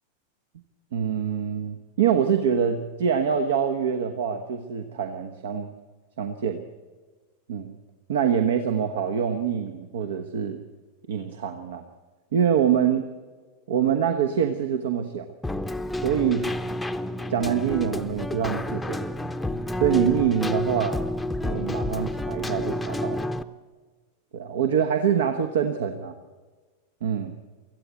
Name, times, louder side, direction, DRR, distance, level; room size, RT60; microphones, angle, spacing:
voice 1, 0.9-5.7 6.2-6.6 7.5-7.7 8.1-10.6 11.1-11.8 12.3-13.1 13.7-15.3 16.0-16.6 17.3-19.1 19.8-21.0 21.4-23.2 24.3-26.1 27.0-27.3, right 8 dB, 60° right, 7 dB, 1.1 m, -25 dB
Keyboard (musical), 15.4-23.4, left 1 dB, 5° left, 0.8 m, -29 dB
24.5 x 15.0 x 8.3 m, 1.4 s
figure-of-eight pair, 90°, 0 cm